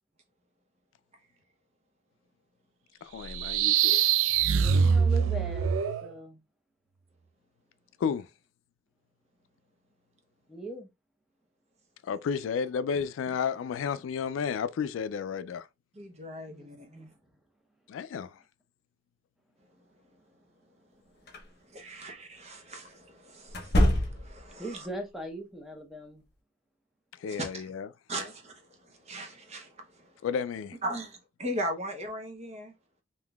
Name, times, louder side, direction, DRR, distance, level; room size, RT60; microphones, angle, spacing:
voice 1, 3.0-4.0 8.0-8.3 12.0-15.7 17.9-18.3 27.2-27.9 30.2-30.8, left 6 dB, 85° left, 0.3 m, -32 dB
sound 1, 3.2-6.1, right 7 dB, 90° right, 0.4 m, -24 dB
voice 2, 4.6-5.7 6.0-6.4 10.5-10.9 16.5-17.1 24.6-26.2, right 1 dB, ahead, 0.8 m, -40 dB
voice 3, 15.9-16.9 21.7-24.9 27.3-27.7 28.1-28.8 29.0-30.1 30.8-32.7, right 1 dB, 35° right, 0.7 m, -38 dB
sound 2, 21.3-21.4 23.5-24.5, equal, 55° left, 0.8 m, -25 dB
3.6 x 2.7 x 2.3 m
head